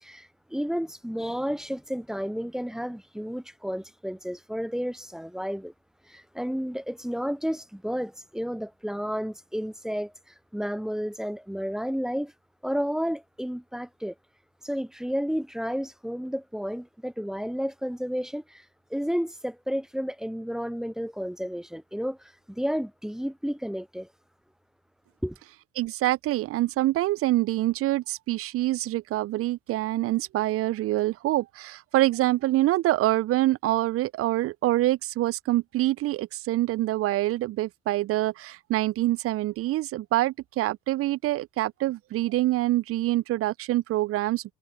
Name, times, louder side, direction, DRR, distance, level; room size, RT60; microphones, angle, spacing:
voice 1, 0.0-5.7 6.1-10.1 10.5-12.3 12.6-14.1 14.6-18.6 18.9-24.1 25.2-25.4, equal, ahead, 0.7 m, -31 dB
voice 2, 25.8-44.5, right 16 dB, 50° right, 0.9 m, -25 dB
figure-of-eight pair, 50°, 30 cm